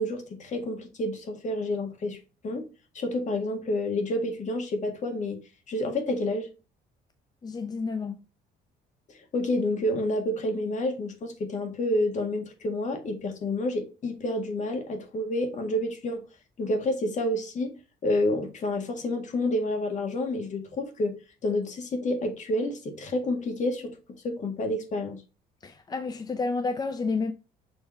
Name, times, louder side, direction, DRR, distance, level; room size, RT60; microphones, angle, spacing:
voice 1, 0.0-2.2 2.4-2.7 2.9-5.4 5.7-6.5 9.3-16.2 16.6-17.7 18.0-21.1 21.4-24.0 24.2-25.2, left 1 dB, 45° left, 1.8 m, -29 dB
voice 2, 7.4-8.2 25.6-27.3, left 4 dB, 25° left, 0.5 m, -30 dB
6.5 x 3.4 x 4.5 m
cardioid pair, 110°, 17 cm